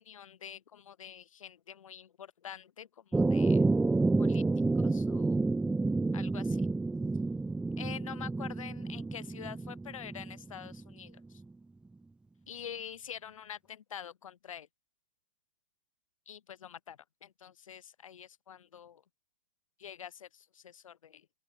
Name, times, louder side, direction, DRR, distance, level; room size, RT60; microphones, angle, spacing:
voice 1, 0.0-3.6 4.2-4.4 4.7-5.4 6.1-6.7 7.8-11.4 12.5-14.7 16.3-19.0 19.8-21.3, left 9 dB, 65° left, 5.2 m, -46 dB
sound 1, 3.1-10.9, right 3 dB, 5° right, 0.5 m, -29 dB
open air
figure-of-eight pair, 110°, 18 cm